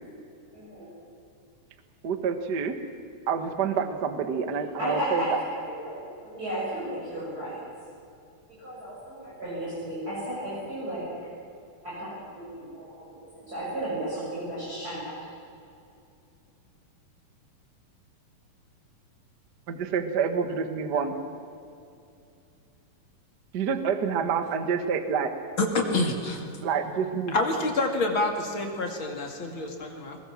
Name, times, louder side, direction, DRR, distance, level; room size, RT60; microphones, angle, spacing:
voice 1, 0.5-0.9 4.8-7.6 8.6-11.1 11.8-15.2, right 1 dB, 25° right, -9 dB, 7.5 m, -34 dB
voice 2, 2.0-2.8 3.3-5.4 19.7-21.1 23.5-25.3 26.6-27.4, right 6 dB, 50° right, 8 dB, 1.3 m, -27 dB
voice 3, 25.6-26.5 27.3-30.2, left 2 dB, 40° left, 2 dB, 2.7 m, -27 dB
22.5 x 21.0 x 7.4 m, 2.5 s
omnidirectional pair, 3.9 m